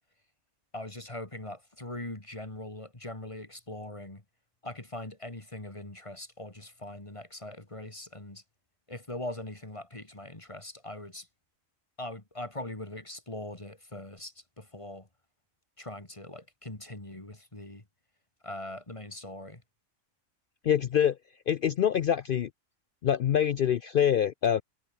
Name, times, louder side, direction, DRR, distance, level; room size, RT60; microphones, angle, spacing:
voice 1, 0.7-4.2 4.6-8.4 8.9-11.3 12.0-15.1 15.8-17.8 18.4-19.6, left 1 dB, 20° left, 2.5 m, -41 dB
voice 2, 20.6-21.2 21.5-22.5 23.0-24.6, left 9 dB, 70° left, 0.5 m, -25 dB
omnidirectional pair, 1.4 m